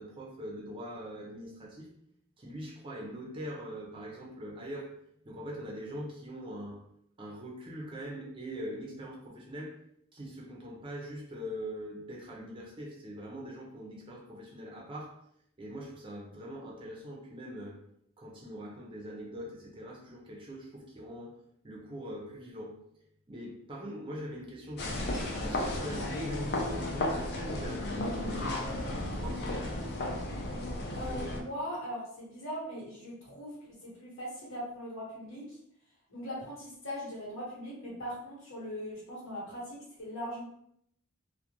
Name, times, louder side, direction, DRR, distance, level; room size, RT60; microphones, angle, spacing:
voice 1, 0.0-1.9 2.4-4.9 5.2-6.9 7.2-9.8 10.1-15.2 15.6-17.8 18.2-21.3 21.6-22.8 23.3-25.1 25.4-29.7, equal, 25° right, -3 dB, 0.5 m, -42 dB
sound 1, 24.8-31.4, left 1 dB, 50° left, 0.4 m, -34 dB
voice 2, 30.9-35.6 36.1-40.4, equal, 70° left, -6 dB, 1.1 m, -40 dB
2.4 x 2.1 x 2.9 m, 0.72 s
head